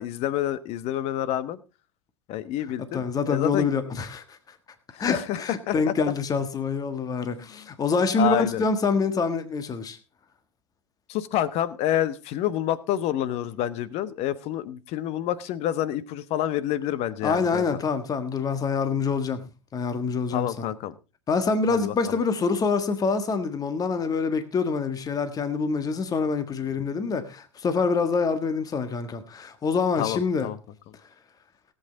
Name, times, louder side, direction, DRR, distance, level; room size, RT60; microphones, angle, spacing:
voice 1, 0.0-1.6 2.3-3.7 4.9-5.9 8.2-8.6 11.1-17.6 20.3-20.9 21.7-22.2 30.0-30.6, left 12 dB, 45° left, 1.1 m, -28 dB
voice 2, 2.9-4.4 5.0-10.0 17.2-19.4 19.7-20.7 21.3-30.5, left 4 dB, 25° left, 1.6 m, -26 dB
17.5 x 8.2 x 4.0 m
figure-of-eight pair, 85°, 15 cm